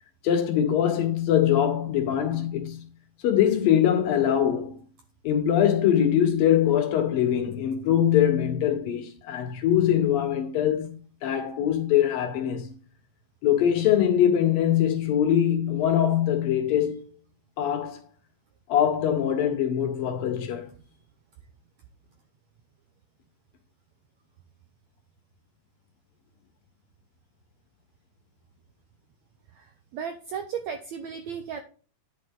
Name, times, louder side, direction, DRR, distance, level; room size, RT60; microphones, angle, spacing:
voice 1, 0.2-2.8 3.2-4.8 5.2-10.9 11.2-12.7 13.4-17.0 17.6-18.0 18.7-20.7, left 10 dB, 75° left, 3.2 m, -23 dB
voice 2, 29.6-31.6, right 7 dB, 80° right, 1.6 m, -35 dB
10.5 x 6.2 x 3.7 m
omnidirectional pair, 4.1 m